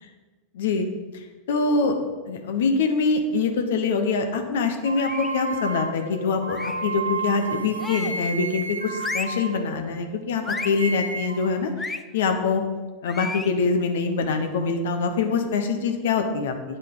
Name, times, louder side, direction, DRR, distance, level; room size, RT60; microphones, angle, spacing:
voice 1, 0.5-0.9 1.1-2.0 2.3-12.6 13.0-16.8, left 4 dB, 65° left, 5 dB, 0.9 m, -24 dB
sound 1, 4.8-10.1 10.4-11.5, right 3 dB, 85° right, 0.8 m, -32 dB
sound 2, 5.0-5.4 6.5-6.9 7.8-8.3 9.0-9.5 10.4-10.8 11.8-12.0 13.1-13.6, left 3 dB, 15° left, 0.5 m, -33 dB
9.5 x 7.9 x 3.8 m, 1.3 s
figure-of-eight pair, 85°, 0 cm